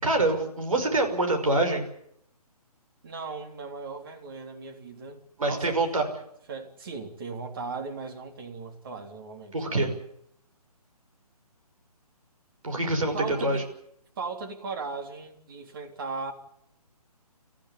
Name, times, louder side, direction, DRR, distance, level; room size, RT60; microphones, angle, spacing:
voice 1, 0.0-1.8 5.4-6.1 9.5-9.9 12.6-13.6, right 2 dB, 60° right, 5.8 m, -25 dB
voice 2, 3.0-5.8 6.5-9.7 13.1-13.7 14.2-16.3, right 4 dB, 35° right, 3.4 m, -37 dB
25.5 x 15.0 x 9.8 m
figure-of-eight pair, 140°, 20 cm